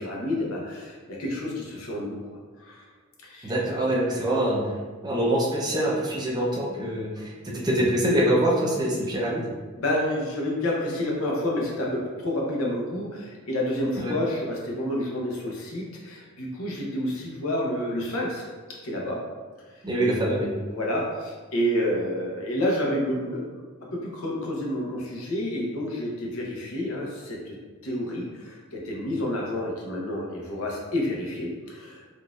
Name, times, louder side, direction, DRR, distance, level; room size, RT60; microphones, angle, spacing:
voice 1, 0.0-2.8 3.2-3.5 7.2-7.3 9.8-18.5 18.8-19.2 20.7-23.6 23.9-27.6 27.8-32.0, left 1 dB, 80° left, -2 dB, 0.8 m, -29 dB
voice 2, 3.4-4.6 5.0-9.5 14.0-14.1 19.8-20.5, right 1 dB, 20° right, -3 dB, 0.5 m, -24 dB
3.8 x 2.4 x 2.4 m, 1.4 s
head